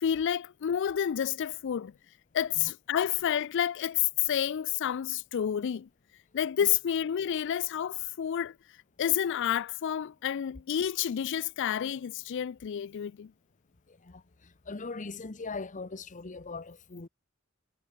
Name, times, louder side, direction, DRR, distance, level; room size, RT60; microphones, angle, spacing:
voice 1, 0.0-1.9 2.3-5.9 6.3-8.5 9.0-13.3, left 9 dB, 60° left, 0.4 m, -29 dB
voice 2, 13.9-17.1, left 3 dB, 35° left, 0.9 m, -40 dB
head